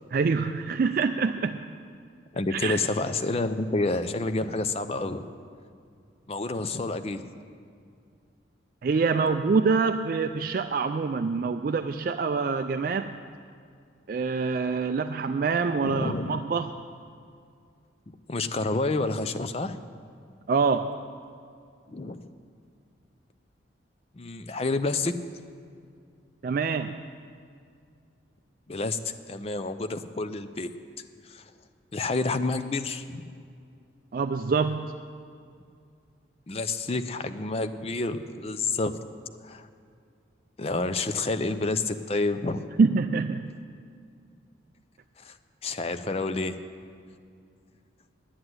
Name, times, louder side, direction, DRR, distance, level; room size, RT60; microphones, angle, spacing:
voice 1, 0.1-1.6 2.5-2.8 8.8-13.2 14.1-16.7 20.5-21.1 26.4-27.0 34.1-34.9 42.8-43.5, right 4 dB, 50° right, 9 dB, 0.3 m, -25 dB
voice 2, 2.3-5.2 6.3-7.3 15.8-16.4 18.3-19.8 21.9-22.2 24.1-25.1 28.7-30.7 31.2-31.4 31.9-33.3 36.5-38.9 39.4-39.7 40.6-42.7 45.2-45.4 45.6-46.6, left 3 dB, 30° left, 10 dB, 0.5 m, -29 dB
10.0 x 7.9 x 9.5 m, 2.3 s
head